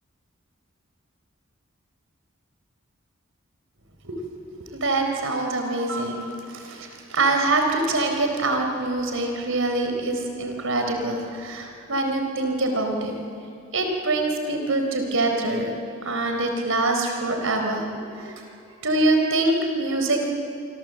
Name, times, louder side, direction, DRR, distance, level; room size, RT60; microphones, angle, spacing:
voice 1, 4.8-13.1 13.7-15.7 16.1-17.9 18.2-18.3 18.8-20.3, right 2 dB, 75° right, 4 dB, 4.2 m, -24 dB
27.0 x 24.5 x 7.9 m, 2.5 s
head